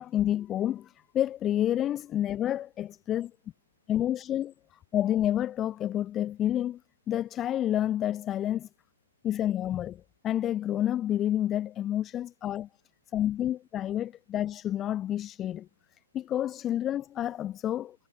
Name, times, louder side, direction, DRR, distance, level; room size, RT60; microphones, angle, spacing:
voice 1, 0.0-3.3 3.9-4.5 4.9-6.8 7.1-8.7 9.2-12.7 13.1-15.7 16.1-18.0, left 11 dB, 15° left, 7.7 m, -29 dB
hypercardioid pair, 160°, 0 cm